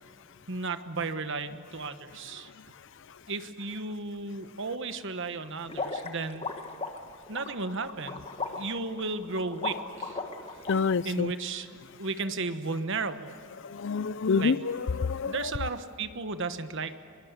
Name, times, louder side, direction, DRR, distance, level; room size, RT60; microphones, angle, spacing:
voice 1, 0.5-2.5 3.3-6.5 7.3-8.2 8.6-10.2 11.0-11.7 12.0-13.3 14.3-14.5 15.2-17.0, right 3 dB, 55° right, 1.2 m, -34 dB
sound 1, 5.7-10.7, left 3 dB, 25° left, 1.4 m, -36 dB
voice 2, 10.7-11.3 13.6-15.5, left 5 dB, 55° left, 0.5 m, -27 dB
23.5 x 22.5 x 8.2 m
head